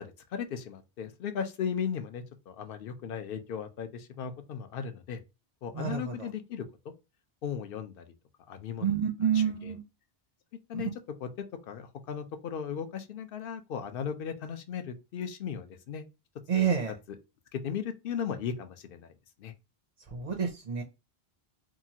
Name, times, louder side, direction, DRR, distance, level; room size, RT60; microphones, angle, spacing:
voice 1, 0.0-5.2 5.6-6.7 7.4-8.0 8.5-8.9 9.3-9.7 10.7-10.9 11.2-16.0 16.5-16.7 17.5-19.1 19.4-19.5, left 7 dB, 65° left, 0.7 m, -36 dB
voice 2, 5.7-6.3 8.8-9.8 10.7-10.8 16.5-16.9 20.1-20.8, right 8 dB, 45° right, 0.5 m, -28 dB
2.9 x 2.4 x 2.7 m
omnidirectional pair, 1.1 m